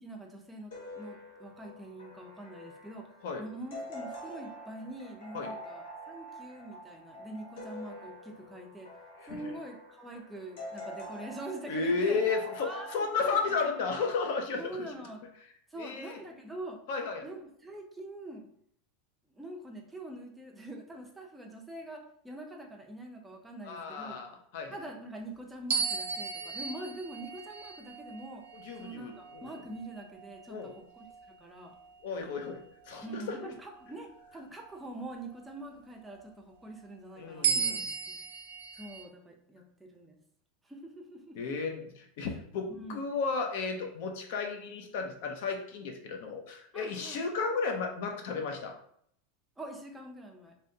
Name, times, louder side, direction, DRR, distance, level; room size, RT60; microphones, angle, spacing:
voice 1, 0.0-3.1 3.4-8.9 9.3-12.2 12.6-13.7 14.6-15.3 15.7-16.8 17.2-18.5 19.3-24.2 24.7-28.4 28.8-31.1 31.4-31.7 33.0-37.8 38.1-38.2 38.8-40.2 40.6-41.4 42.8-43.1 46.7-47.2 49.6-50.5, right 1 dB, 5° right, 0 dB, 0.5 m, -44 dB
sound 1, 0.7-14.4, equal, 85° left, 1.0 m, -46 dB
voice 2, 9.2-9.5 11.7-14.9 15.7-16.2 16.9-17.2 23.6-24.8 28.5-29.4 30.5-30.7 32.0-32.6 32.9-33.0 37.2-37.9 41.4-48.7, left 4 dB, 60° left, 4 dB, 0.6 m, -33 dB
sound 2, 25.7-30.4 31.0-31.3 37.4-39.0, right 6 dB, 75° right, 0.4 m, -35 dB
3.4 x 2.7 x 2.7 m, 0.67 s
supercardioid pair, 165°, 0 cm